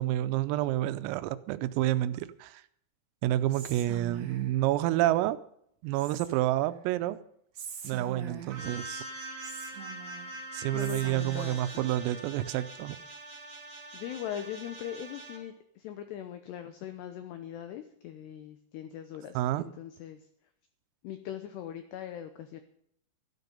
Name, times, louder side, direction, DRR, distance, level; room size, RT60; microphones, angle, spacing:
voice 1, 0.0-2.6 3.2-5.4 5.8-7.2 7.8-9.1 10.5-13.0 19.4-19.6, right 14 dB, 90° right, 13 dB, 3.4 m, -29 dB
Whispering, 3.5-4.6 5.9-6.6 7.5-8.7 9.4-10.3 10.8-11.6, right 8 dB, 70° right, 1.7 m, -43 dB
sound 1, 8.5-15.4, right 1 dB, 45° right, 4.1 m, -43 dB
voice 2, 10.7-11.9 13.9-20.3 21.0-22.6, left 10 dB, 90° left, 8 dB, 2.4 m, -41 dB
13.5 x 12.0 x 5.4 m, 0.69 s
omnidirectional pair, 5.9 m